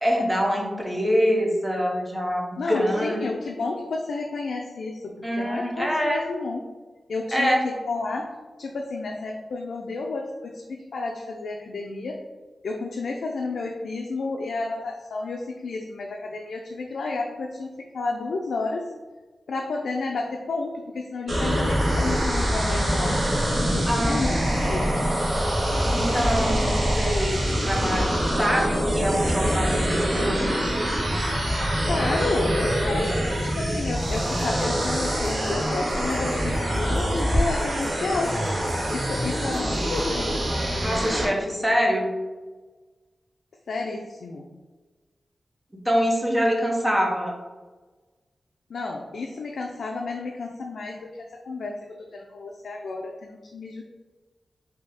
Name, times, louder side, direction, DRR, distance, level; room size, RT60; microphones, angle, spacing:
voice 1, 0.0-3.2 5.2-6.2 7.3-7.6 23.8-24.2 25.9-30.6 40.8-42.1 45.8-47.3, equal, 5° right, -1 dB, 0.7 m, -25 dB
voice 2, 2.6-6.6 7.1-8.3 8.6-12.2 12.6-18.9 19.5-23.2 23.5-25.1 31.8-33.1 33.4-38.3 38.9-40.3 43.7-44.5 48.7-53.8, left 3 dB, 80° left, 0 dB, 0.3 m, -31 dB
sound 1, 21.3-41.3, equal, 50° right, 1.2 m, -24 dB
sound 2, 34.0-40.1, right 1 dB, 75° right, 1.5 m, -38 dB
3.5 x 2.6 x 4.0 m, 1.3 s
wide cardioid pair, 170°, 0 cm